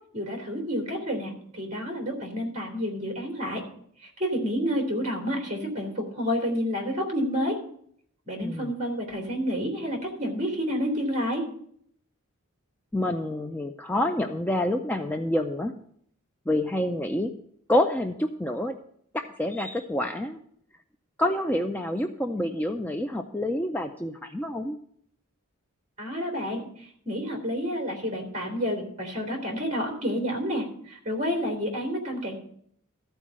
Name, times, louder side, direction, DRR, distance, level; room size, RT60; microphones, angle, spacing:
voice 1, 0.1-3.6 4.0-7.6 8.3-11.4 26.0-32.4, equal, 35° right, 2 dB, 2.7 m, -29 dB
voice 2, 12.9-15.7 16.5-17.3 17.7-18.8 19.1-20.4 21.2-24.8, left 1 dB, 10° left, 4 dB, 0.4 m, -27 dB
13.5 x 4.6 x 7.4 m, 0.65 s
head